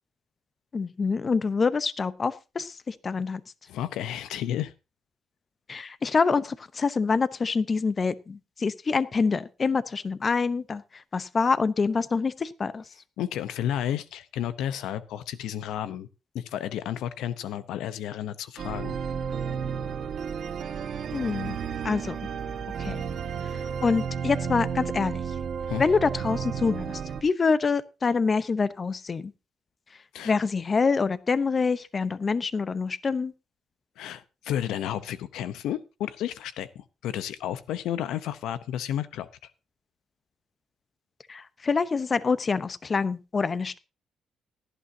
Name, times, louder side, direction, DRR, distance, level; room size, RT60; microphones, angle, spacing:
voice 1, 0.7-3.4 5.7-12.8 21.1-21.6 21.8-22.2 22.8-23.1 23.5-25.2 25.8-29.3 30.2-33.3 41.3-43.8, left 4 dB, 35° left, 16 dB, 0.8 m, -26 dB
voice 2, 3.7-4.7 13.2-16.1 16.3-19.0 25.7-25.8 30.1-30.3 34.0-39.3, left 11 dB, 85° left, 14 dB, 0.7 m, -32 dB
sound 1, 18.6-27.2, right 7 dB, 60° right, 1.4 m, -32 dB
17.5 x 11.0 x 2.7 m, 0.28 s
cardioid pair, 90°, 0 cm